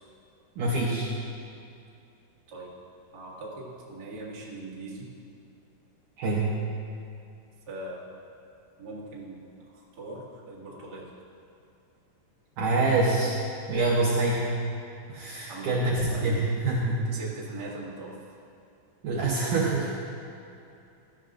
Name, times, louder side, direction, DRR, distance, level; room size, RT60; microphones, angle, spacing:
voice 1, 0.6-1.1 6.2-6.5 12.6-13.4 13.7-14.5 15.1-17.1 19.0-19.9, right 2 dB, 85° right, -4 dB, 1.8 m, -25 dB
voice 2, 3.1-5.1 7.7-8.0 8.8-11.1 15.5-16.4 17.0-18.3, right 2 dB, 45° right, -6 dB, 1.3 m, -40 dB
16.5 x 13.0 x 2.5 m, 2.7 s
omnidirectional pair, 5.0 m